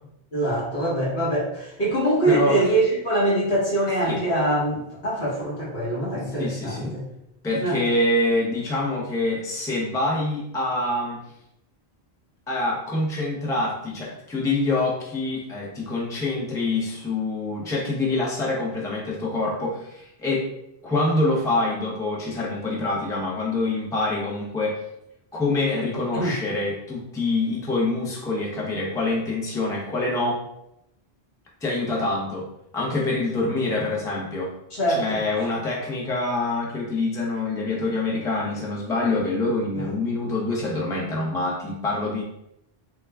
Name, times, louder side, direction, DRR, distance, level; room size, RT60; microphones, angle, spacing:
voice 1, 0.3-7.0 7.6-7.8 26.1-26.3 34.7-35.2 39.7-39.9, right 1 dB, 75° left, -6 dB, 1.5 m, -24 dB
voice 2, 2.3-2.7 4.0-4.2 6.4-6.9 7.4-11.2 12.5-20.5 20.8-24.8 25.3-30.4 31.6-32.5 32.7-34.5 35.0-42.2, left 2 dB, 5° left, -4 dB, 0.5 m, -25 dB
3.6 x 2.2 x 3.4 m, 0.80 s
omnidirectional pair, 1.0 m